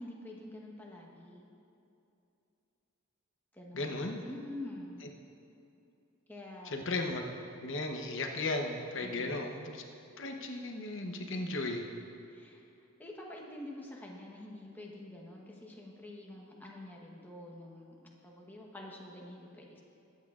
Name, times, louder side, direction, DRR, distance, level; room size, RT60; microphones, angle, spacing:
voice 1, 0.0-1.5 3.5-5.0 6.3-6.8 9.0-9.4 12.3-12.6 13.0-19.8, left 1 dB, 10° left, -2 dB, 1.1 m, -47 dB
voice 2, 3.7-4.2 6.7-7.2 7.6-9.8 10.2-11.8, left 2 dB, 60° left, 2 dB, 0.8 m, -35 dB
20.5 x 8.5 x 2.4 m, 2.7 s
head